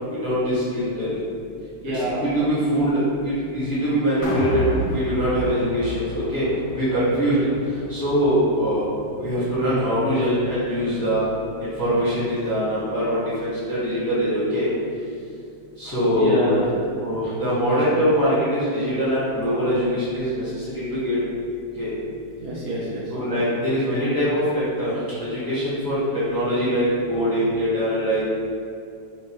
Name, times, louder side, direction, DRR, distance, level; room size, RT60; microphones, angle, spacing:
voice 1, 0.2-1.1 2.0-4.6 4.9-6.5 6.7-7.4 7.9-8.9 9.2-11.2 11.6-14.7 15.8-16.4 17.0-21.2 21.8-21.9 23.1-28.2, equal, 15° left, -11 dB, 1.0 m, -23 dB
voice 2, 1.8-2.4 16.2-16.9 17.6-17.9 22.4-23.1, right 1 dB, 65° right, -6 dB, 1.1 m, -26 dB
sound 1, 4.2-10.4 10.8-10.9, equal, 70° left, 1.0 m, -32 dB
5.2 x 2.5 x 3.5 m, 2.4 s
omnidirectional pair, 2.0 m